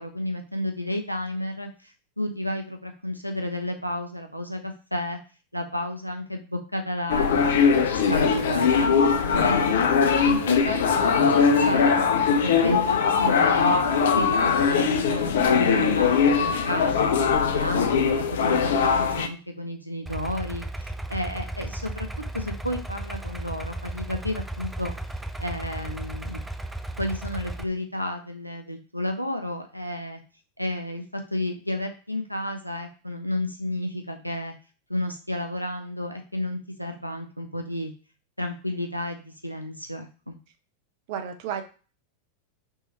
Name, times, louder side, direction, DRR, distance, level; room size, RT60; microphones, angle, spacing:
voice 1, 0.0-5.2 5.5-7.5 7.9-8.9 9.4-11.2 11.6-13.8 14.1-24.9 25.4-26.4 27.0-30.2 30.6-34.5 34.9-37.9 38.4-40.4, left 1 dB, 90° right, 5 dB, 0.5 m, -32 dB
sound 1, 7.1-19.3, left 6 dB, 60° left, 0.5 m, -21 dB
voice 2, 9.1-9.5 41.1-41.6, right 8 dB, 50° right, 7 dB, 0.6 m, -33 dB
Idling, 20.1-27.6, right 1 dB, 5° right, 0.4 m, -35 dB
5.5 x 3.0 x 3.0 m, 0.35 s
figure-of-eight pair, 90°, 0 cm